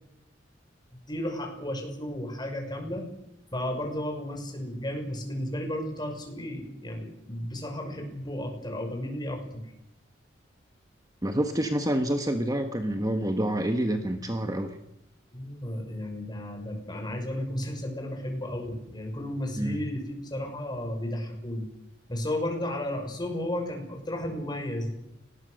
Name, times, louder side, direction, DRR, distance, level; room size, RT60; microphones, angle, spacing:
voice 1, 1.1-3.0 3.5-9.7 15.3-21.7 22.1-24.9, left 1 dB, 25° left, 3 dB, 6.1 m, -33 dB
voice 2, 11.2-14.7 19.6-19.8, right 1 dB, 20° right, 6 dB, 1.5 m, -27 dB
28.5 x 20.5 x 6.6 m, 0.85 s
head